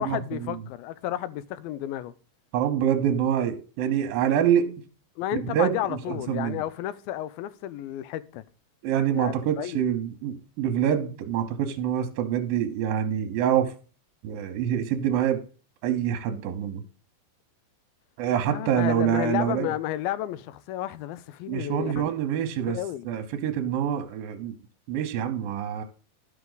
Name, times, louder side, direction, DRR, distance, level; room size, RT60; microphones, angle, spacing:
voice 1, 0.0-2.1 5.2-8.4 9.1-9.8 18.5-22.1 22.7-23.1, left 13 dB, 85° left, 2.5 m, -32 dB
voice 2, 2.5-4.7 5.3-5.7 6.1-6.6 8.8-13.7 14.2-15.4 15.8-16.8 18.2-19.7 21.5-22.8 23.1-24.5 24.9-25.8, right 9 dB, 75° right, 2.6 m, -26 dB
12.0 x 5.9 x 3.9 m
omnidirectional pair, 4.2 m